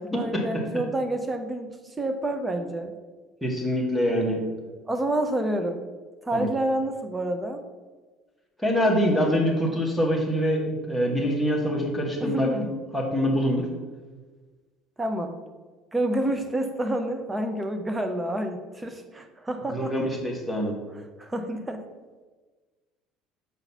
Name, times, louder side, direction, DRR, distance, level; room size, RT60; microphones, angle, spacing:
voice 1, 0.0-3.0 4.9-5.9 6.2-7.6 12.2-12.7 15.0-15.4 15.9-19.9 21.2-21.8, right 1 dB, 15° right, 6 dB, 0.8 m, -28 dB
voice 2, 3.4-4.4 6.3-6.5 8.6-13.6 19.7-20.7, equal, ahead, -1 dB, 1.8 m, -25 dB
5.5 x 4.0 x 5.7 m, 1.3 s
figure-of-eight pair, 60°, 0 cm